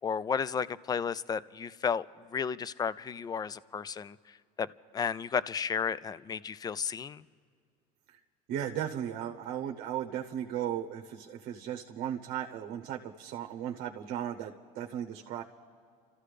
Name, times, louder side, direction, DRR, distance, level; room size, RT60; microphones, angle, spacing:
voice 1, 0.0-2.1 2.3-4.2 4.6-4.7 4.9-7.3, left 6 dB, 20° left, 18 dB, 0.4 m, -33 dB
voice 2, 8.5-15.4, right 10 dB, 65° right, 2 dB, 0.9 m, -36 dB
30.0 x 14.0 x 3.3 m, 2.2 s
supercardioid pair, 100°, 19 cm